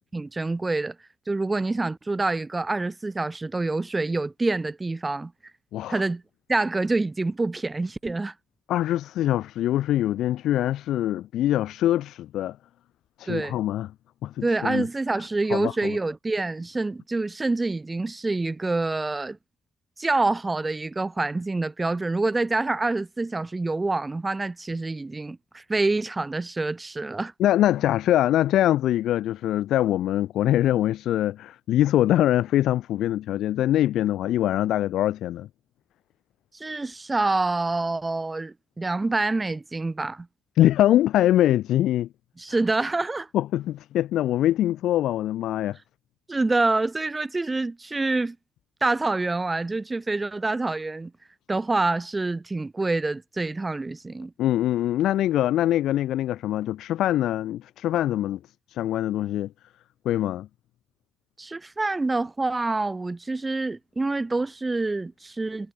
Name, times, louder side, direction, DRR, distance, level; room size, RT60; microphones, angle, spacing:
voice 1, 0.1-1.0 1.3-5.3 5.9-6.2 6.5-8.3 13.3-13.6 14.4-19.4 20.0-27.3 36.5-40.3 42.4-43.3 46.3-48.4 48.8-51.1 51.5-54.3 61.4-65.7, right 3 dB, 20° right, 5.4 m, -26 dB
voice 2, 8.7-12.6 13.2-13.9 14.2-14.8 15.5-15.9 27.4-35.5 40.6-42.1 42.5-42.6 43.3-45.8 54.4-58.4 58.7-59.5 60.0-60.5, left 13 dB, 80° left, 7.4 m, -23 dB
cardioid pair, 90°, 0 cm